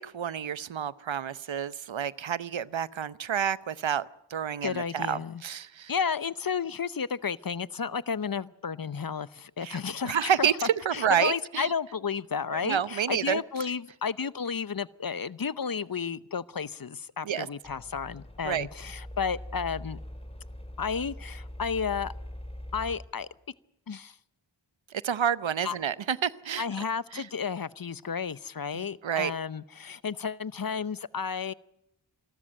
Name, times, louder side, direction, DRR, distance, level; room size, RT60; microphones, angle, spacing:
voice 1, 0.0-5.9 9.6-11.7 12.5-13.4 17.2-17.5 18.4-18.7 24.9-26.8 27.1-27.3 28.7-29.3, right 8 dB, 80° right, 18 dB, 0.8 m, -29 dB
voice 2, 4.6-5.4 5.9-10.5 10.9-20.0 20.8-22.1 22.7-23.3 23.9-24.1 25.6-25.7 26.6-31.5, left 6 dB, 50° left, 18 dB, 0.8 m, -32 dB
sound 1, 17.6-23.0, left 1 dB, 15° left, 4.7 m, -42 dB
27.0 x 13.0 x 9.9 m, 0.87 s
wide cardioid pair, 60°, 45 cm